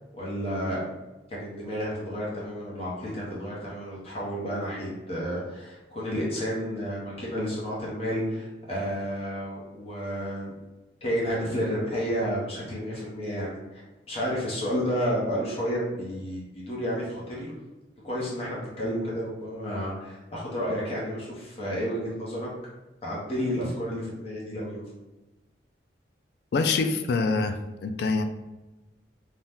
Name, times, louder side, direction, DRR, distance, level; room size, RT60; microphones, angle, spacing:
voice 1, 0.1-0.8 1.3-10.5 11.0-13.8 14.1-17.5 18.0-22.5 23.0-24.8, equal, 35° left, -6 dB, 0.9 m, -31 dB
voice 2, 26.5-28.2, left 4 dB, 60° left, 7 dB, 0.3 m, -25 dB
2.7 x 2.2 x 3.5 m, 1.1 s
head